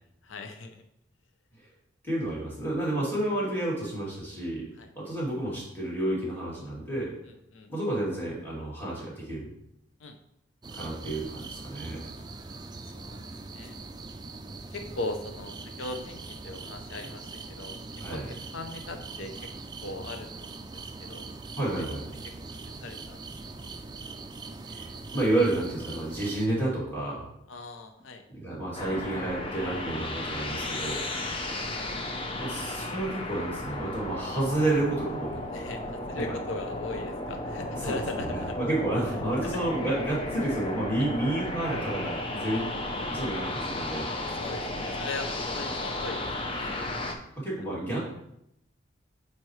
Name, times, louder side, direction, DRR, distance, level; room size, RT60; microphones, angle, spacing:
voice 1, 0.2-0.8 4.8-4.9 7.3-7.7 10.0-10.2 12.2-12.3 12.9-13.8 14.7-17.8 18.1-19.5 19.8-21.3 21.8-22.0 22.2-23.3 23.5-23.7 27.5-28.2 31.2-31.9 35.5-38.6 39.4-39.6 41.0-41.1 44.2-46.9, left 2 dB, 90° left, 6 dB, 0.6 m, -40 dB
voice 2, 2.0-4.7 4.9-7.1 7.7-9.5 10.7-12.0 18.0-18.2 20.7-20.8 21.6-22.1 24.7-27.3 28.3-31.0 32.4-35.4 37.8-42.7 43.1-44.1 47.4-48.0, right 1 dB, 10° left, -7 dB, 2.7 m, -30 dB
sound 1, 10.6-26.5, right 3 dB, 20° right, 0.4 m, -42 dB
sound 2, 28.7-47.1, left 1 dB, 30° left, 0.7 m, -34 dB
9.2 x 4.2 x 3.2 m, 0.78 s
head